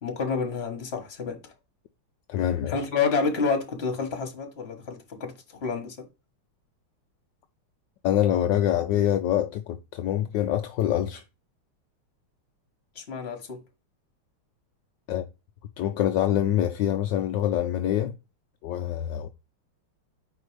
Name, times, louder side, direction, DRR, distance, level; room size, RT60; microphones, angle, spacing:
voice 1, 0.0-1.4 2.7-5.3 5.6-6.0 12.9-13.6, left 5 dB, 35° left, 1.4 m, -29 dB
voice 2, 2.3-2.7 8.0-11.2 15.1-15.2 15.8-18.1 18.6-19.3, left 11 dB, 75° left, 1.0 m, -25 dB
4.6 x 4.5 x 4.9 m
omnidirectional pair, 2.4 m